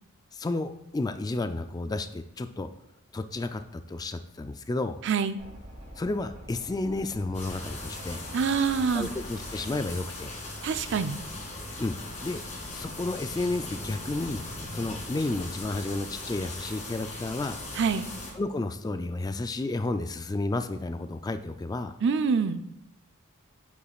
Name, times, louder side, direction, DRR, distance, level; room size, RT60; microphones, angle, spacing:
voice 1, 0.3-2.7 3.1-5.0 6.0-8.2 8.9-10.4 11.8-12.4 12.7-14.4 14.7-17.6 18.3-22.0, left 2 dB, 15° left, 9 dB, 0.3 m, -32 dB
voice 2, 5.0-5.4 8.3-9.1 10.6-11.2 17.8-18.1 22.0-22.6, right 5 dB, 55° right, 11 dB, 0.4 m, -26 dB
sound 1, 5.4-9.8, equal, 40° right, 2.9 m, -46 dB
sound 2, 7.3-18.3, left 2 dB, 35° left, 2.0 m, -39 dB
9.4 x 7.0 x 2.4 m, 0.81 s
head